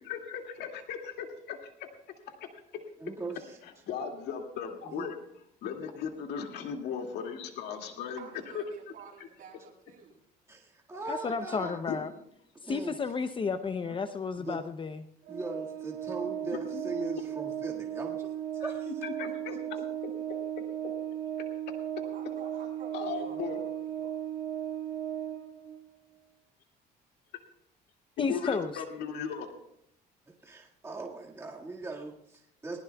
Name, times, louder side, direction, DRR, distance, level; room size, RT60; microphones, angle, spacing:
voice 1, 0.0-1.7 3.9-5.2 5.6-8.2 8.5-8.6 11.9-12.0 16.5-16.8 18.6-18.7 19.0-20.1 20.6-20.9 22.9-23.6 28.3-29.5, left 7 dB, 80° left, 3 dB, 2.3 m, -37 dB
voice 2, 3.0-3.6 4.8-5.1 10.5-11.8 12.6-13.0 14.4-14.6 15.3-18.9 30.3-32.8, right 3 dB, 15° right, -2 dB, 1.9 m, -40 dB
voice 3, 8.2-10.2 22.0-24.2, right 6 dB, 55° right, -2 dB, 7.6 m, -50 dB
voice 4, 11.1-12.1 12.7-15.0 28.2-28.7, left 5 dB, 30° left, 10 dB, 0.7 m, -32 dB
Organ, 15.2-26.0, right 10 dB, 85° right, 1.9 m, -36 dB
20.0 x 19.5 x 2.3 m, 0.75 s
cardioid pair, 110°, 17 cm